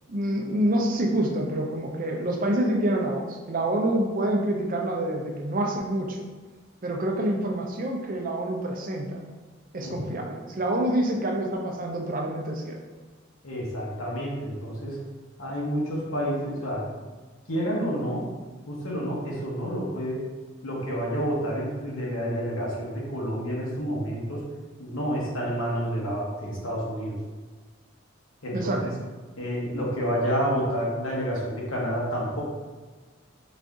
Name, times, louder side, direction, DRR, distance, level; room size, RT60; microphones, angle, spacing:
voice 1, 0.1-6.2 6.8-9.2 9.7-12.8 28.5-28.8, right 1 dB, 40° right, 1 dB, 0.5 m, -27 dB
voice 2, 9.8-10.2 13.4-15.0 15.4-17.0 17.5-18.2 18.7-20.2 20.6-24.4 24.8-27.1 28.4-28.9 29.4-32.4, equal, 85° left, -4 dB, 1.1 m, -29 dB
4.1 x 2.6 x 3.5 m, 1.4 s
head